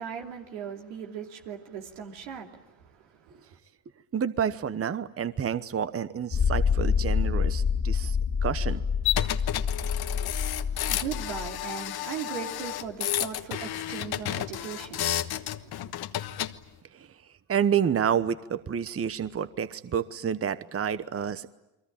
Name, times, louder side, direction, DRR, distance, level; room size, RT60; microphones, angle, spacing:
voice 1, 0.0-3.6 10.6-15.9, right 7 dB, 85° right, 2.9 m, -39 dB
voice 2, 4.1-8.2 8.4-8.8 16.9-17.1 17.5-21.5, right 8 dB, 30° right, 1.1 m, -29 dB
sound 1, 6.3-11.6, left 6 dB, 40° left, 2.0 m, -27 dB
sound 2, 9.1-16.5, left 12 dB, 55° left, 1.3 m, -31 dB
29.5 x 22.5 x 8.7 m
hypercardioid pair, 60°, 44 cm